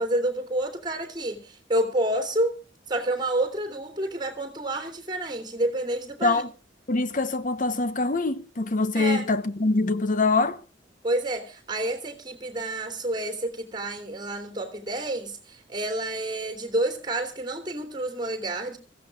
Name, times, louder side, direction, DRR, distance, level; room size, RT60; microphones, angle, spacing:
voice 1, 0.0-2.5 2.9-6.4 8.9-9.3 11.0-18.8, right 1 dB, 25° right, 3.1 m, -29 dB
voice 2, 6.9-10.6, left 3 dB, 45° left, 1.0 m, -24 dB
24.5 x 15.5 x 2.4 m
head